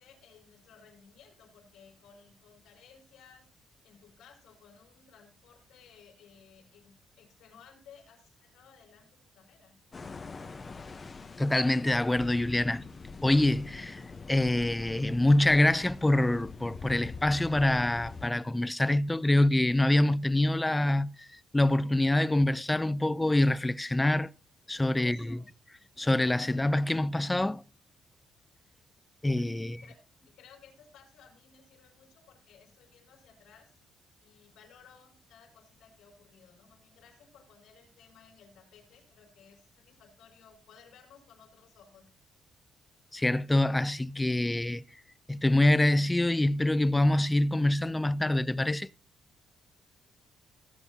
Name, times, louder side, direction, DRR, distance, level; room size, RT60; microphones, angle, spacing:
voice 1, 0.0-9.8 25.0-25.9 29.6-33.7 34.2-42.1, left 7 dB, 90° left, 4.8 m, -58 dB
sound 1, 9.9-18.3, left 4 dB, 30° left, 0.9 m, -44 dB
voice 2, 11.4-12.8 13.2-14.0 14.3-24.3 24.7-25.4 26.0-27.6 29.2-29.8 43.1-44.8 45.3-48.9, left 1 dB, 10° left, 0.4 m, -25 dB
17.0 x 8.0 x 2.8 m
cardioid pair, 90°, 0 cm